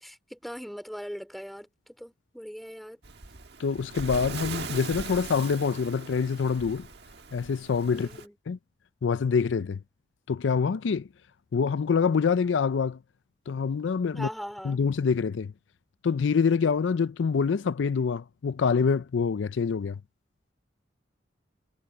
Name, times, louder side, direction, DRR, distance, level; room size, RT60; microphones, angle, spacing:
voice 1, 0.0-1.7 2.0-3.0 7.9-8.3 14.1-14.8, equal, ahead, 2.7 m, -40 dB
Waves surf, 3.0-8.3, right 4 dB, 65° right, 1.6 m, -40 dB
voice 2, 3.6-6.9 7.3-8.1 8.5-8.6 9.0-9.8 10.3-11.1 11.5-13.0 13.5-14.3 14.6-15.5 16.0-20.0, left 5 dB, 85° left, 0.4 m, -26 dB
head